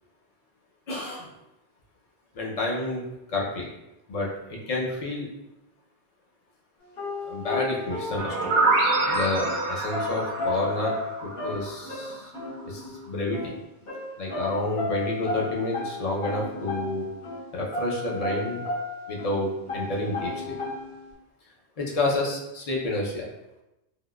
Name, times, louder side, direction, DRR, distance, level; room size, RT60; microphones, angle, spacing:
voice 1, 0.9-1.3 2.3-3.7 4.1-5.3 7.2-12.3 12.7-13.5 14.2-17.0 17.5-18.6 19.1-20.6 21.8-23.3, left 2 dB, 45° left, -2 dB, 0.6 m, -29 dB
sound 1, 7.0-17.4 17.7-19.4 19.7-21.1, left 2 dB, 60° left, 1.6 m, -34 dB
sound 2, 8.2-11.9, right 3 dB, 65° right, 0.8 m, -26 dB
3.5 x 2.2 x 2.3 m, 0.92 s
omnidirectional pair, 1.1 m